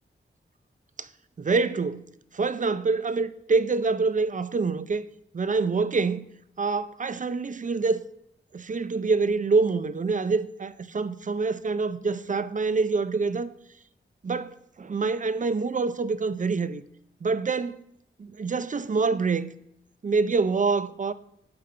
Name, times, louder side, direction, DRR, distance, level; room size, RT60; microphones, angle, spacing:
voice 1, 1.4-2.1 2.3-5.0 5.3-6.2 6.6-8.0 8.5-13.5 14.2-16.8 17.2-17.8 18.2-19.5 20.0-21.1, right 4 dB, 40° right, 0.5 m, -26 dB
8.7 x 3.7 x 4.3 m
cardioid pair, 60°, 21 cm